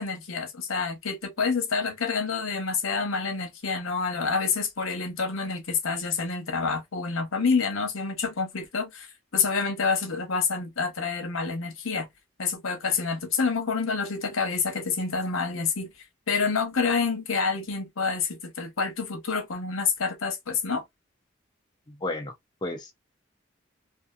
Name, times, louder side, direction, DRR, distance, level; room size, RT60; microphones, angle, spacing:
voice 1, 0.0-9.1 9.3-12.1 12.4-15.9 16.3-20.8, left 5 dB, 90° left, 0.8 m, -28 dB
voice 2, 21.9-22.3 22.6-22.9, left 2 dB, 20° left, 0.4 m, -32 dB
2.7 x 2.4 x 2.2 m
head